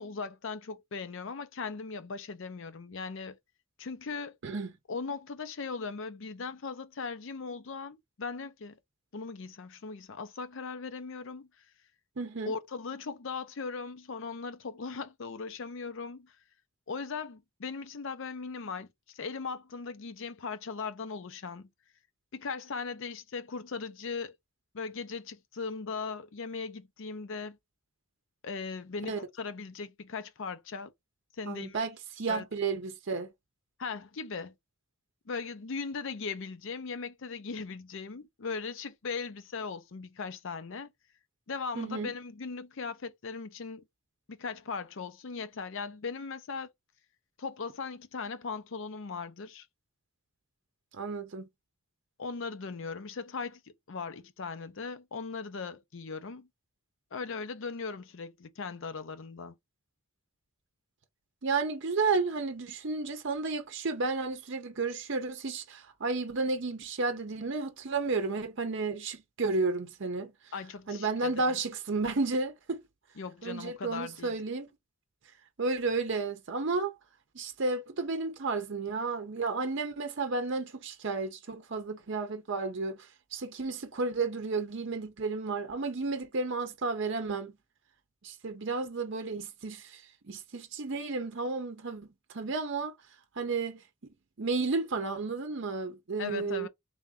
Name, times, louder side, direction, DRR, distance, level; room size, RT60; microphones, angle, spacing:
voice 1, 0.0-3.4 3.8-4.4 4.9-8.8 9.1-11.5 12.5-16.3 16.9-21.7 22.3-24.4 24.7-27.6 28.4-30.9 31.3-31.8 32.3-32.4 33.8-34.5 35.3-40.9 41.5-43.8 44.3-46.7 47.4-49.7 52.2-53.6 53.9-56.5 57.1-59.5 70.5-71.6 73.2-74.3 96.2-96.7, left 4 dB, 60° left, 0.6 m, -38 dB
voice 2, 4.4-4.7 12.2-12.5 29.1-29.2 31.4-33.3 41.7-42.1 50.9-51.4 61.4-70.3 70.9-72.8 73.4-74.7 75.6-76.9 77.3-83.0 83.3-87.5 88.2-92.9 93.4-93.8 94.4-96.7, right 3 dB, 60° right, 0.7 m, -32 dB
3.5 x 2.6 x 3.5 m
head